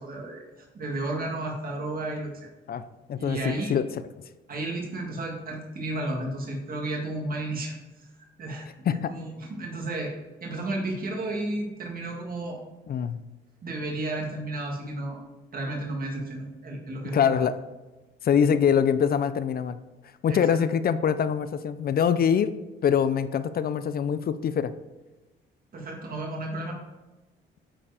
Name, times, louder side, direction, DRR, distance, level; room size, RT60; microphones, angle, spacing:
voice 1, 0.0-2.5 3.2-3.8 4.5-7.7 8.4-10.1 10.4-12.6 13.6-15.2 15.5-17.4 20.3-20.4 25.7-26.8, right 2 dB, 45° right, 0 dB, 2.0 m, -33 dB
voice 2, 3.1-3.9 8.9-9.1 12.9-13.2 17.1-17.6 18.2-19.8 20.2-22.5 22.8-24.7, left 8 dB, 50° left, 13 dB, 0.5 m, -24 dB
8.8 x 4.7 x 4.9 m, 1.1 s
cardioid pair, 90°, 20 cm